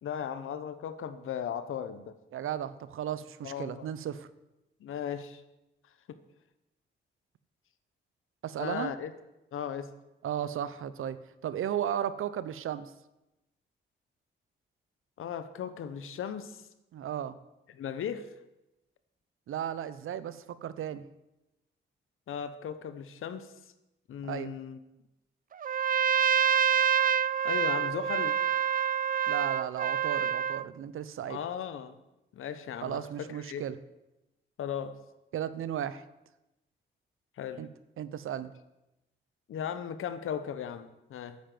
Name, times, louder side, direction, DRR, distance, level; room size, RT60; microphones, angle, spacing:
voice 1, 0.0-2.1 3.4-3.9 4.8-5.4 6.1-6.2 8.6-9.1 9.5-9.9 15.2-16.6 17.7-18.3 22.3-23.5 24.1-24.8 27.4-28.4 31.3-32.0 32.3-33.6 34.6-35.0 37.4-37.7 39.5-41.4, left 8 dB, 85° left, 1.0 m, -37 dB
voice 2, 2.3-4.3 8.4-8.9 10.2-11.2 11.4-12.9 16.9-17.4 19.5-21.1 24.2-24.5 29.3-31.4 32.8-33.8 35.3-36.0 37.6-37.7 38.0-38.5, right 10 dB, 85° right, 0.8 m, -35 dB
Trumpet, 25.6-30.7, right 8 dB, 45° right, 0.4 m, -27 dB
11.0 x 8.5 x 7.8 m
cardioid pair, 70°, 21 cm